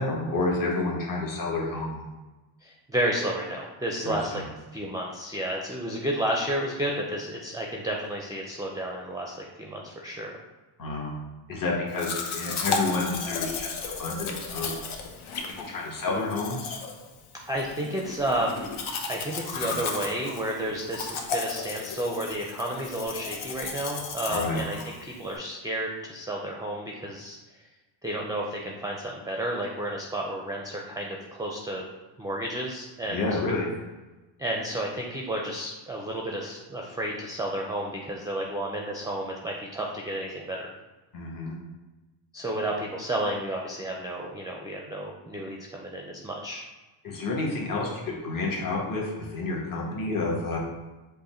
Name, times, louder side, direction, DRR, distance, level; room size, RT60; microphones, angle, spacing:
voice 1, 0.0-2.0 4.0-4.4 10.8-11.1 11.5-14.7 15.4-16.8 19.7-19.8 24.3-24.6 33.1-33.7 41.1-41.6 47.0-50.6, left 3 dB, 40° left, -3 dB, 1.2 m, -30 dB
voice 2, 2.6-4.4 4.7-10.3 17.5-18.7 19.1-27.4 28.0-31.8 32.2-33.4 34.4-40.7 42.3-46.6, right 1 dB, 10° right, -1 dB, 0.4 m, -31 dB
Domestic sounds home sounds, 12.0-25.4, left 4 dB, 75° left, 0.8 m, -34 dB
5.4 x 2.2 x 4.2 m, 1.1 s
cardioid pair, 100°, 50 cm